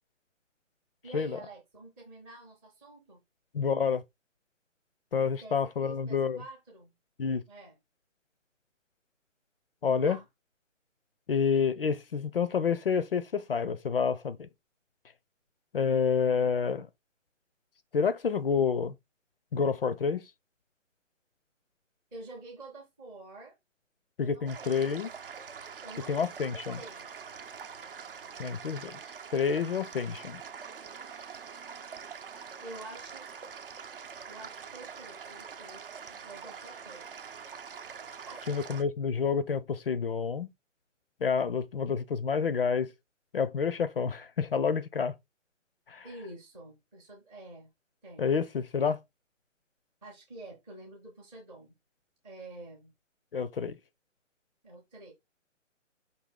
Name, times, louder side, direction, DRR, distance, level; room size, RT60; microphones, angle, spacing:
voice 1, 1.0-3.2 5.4-6.9 7.5-7.7 9.8-10.3 22.1-23.6 24.2-25.0 25.8-27.1 32.6-33.3 34.3-37.1 38.2-38.7 46.0-47.7 48.0-48.3 50.0-51.7 52.2-52.9 54.6-55.1, right 2 dB, 5° right, 0.7 m, -48 dB
voice 2, 3.5-4.0 5.1-6.4 7.2-7.4 9.8-10.2 11.3-14.5 15.7-16.9 17.9-18.9 19.5-20.2 24.2-25.1 26.1-26.8 28.4-29.0 29.3-30.4 38.5-40.5 41.2-42.9 43.3-45.1 45.9-46.1 48.2-49.0 53.3-53.8, left 6 dB, 50° left, 0.5 m, -28 dB
sound 1, 24.5-38.8, right 6 dB, 45° right, 0.7 m, -44 dB
5.3 x 2.7 x 3.6 m
hypercardioid pair, 155°, 38 cm